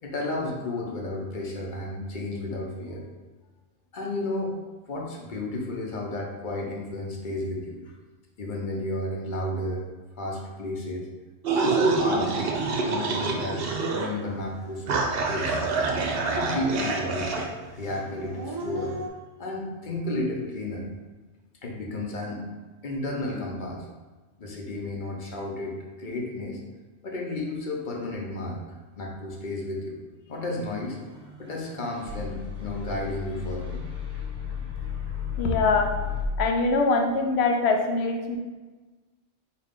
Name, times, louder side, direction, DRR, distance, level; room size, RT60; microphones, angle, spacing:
voice 1, 0.0-3.0 3.9-7.8 8.4-9.8 10.2-11.1 11.5-12.3 12.9-14.9 15.3-15.6 16.4-19.0 19.4-20.9 21.6-22.4 22.8-23.9 24.4-26.6 27.0-28.6 29.0-30.0 30.3-31.0 31.4-33.8, left 1 dB, 50° left, -1 dB, 0.9 m, -32 dB
sound 1, 11.4-14.1 14.4-14.5 14.9-17.5, right 3 dB, 70° right, 0.8 m, -26 dB
Dog / Siren, 14.7-14.8 15.3-16.7 17.0-19.1, left 1 dB, 40° right, 0.3 m, -38 dB
sound 2, 31.0-36.3, left 8 dB, 25° right, 1.1 m, -34 dB
voice 2, 35.4-36.0 36.4-38.4, left 3 dB, 80° left, 3 dB, 0.9 m, -23 dB
4.2 x 3.0 x 3.7 m, 1.3 s
omnidirectional pair, 1.1 m